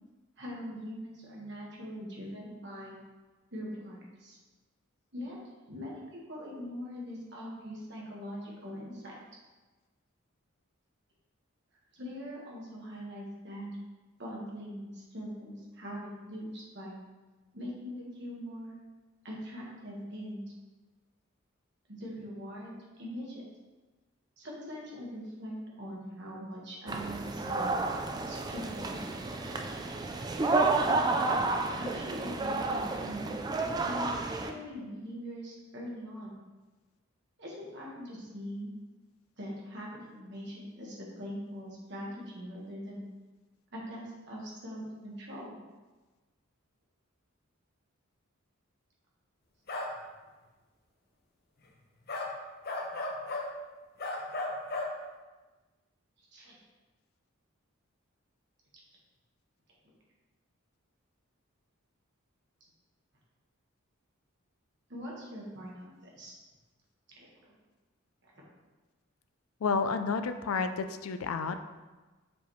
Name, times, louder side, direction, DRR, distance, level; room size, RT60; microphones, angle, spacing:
voice 1, 0.4-3.0 3.5-4.4 5.1-5.4 5.7-9.1 11.9-13.7 14.2-16.9 17.5-18.7 19.2-20.4 21.9-23.4 24.4-27.8 28.2-29.6 31.8-33.3 33.8-34.1 34.4-36.3 37.4-38.7 39.4-43.0 43.7-45.6 56.3-56.5 64.9-66.3 67.2-67.5 68.2-68.3, equal, 55° right, -4 dB, 1.5 m, -42 dB
sound 1, 26.9-34.5, right 3 dB, 20° right, 0.3 m, -31 dB
sound 2, 49.7-49.9 52.1-52.3 52.6-53.5 54.0-54.9, left 2 dB, 45° left, 0.8 m, -34 dB
voice 2, 69.6-71.6, left 4 dB, 80° left, 9 dB, 0.4 m, -30 dB
7.0 x 5.0 x 3.1 m, 1.2 s
head